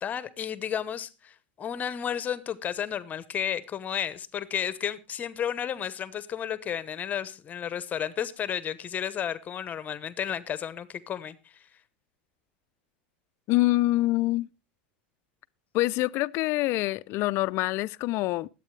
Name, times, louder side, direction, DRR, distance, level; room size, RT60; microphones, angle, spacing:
voice 1, 0.0-11.7, left 9 dB, 30° left, 1.0 m, -32 dB
voice 2, 13.5-14.5 15.7-18.5, left 18 dB, 50° left, 0.5 m, -25 dB
21.0 x 8.4 x 3.2 m
supercardioid pair, 125°, 6 cm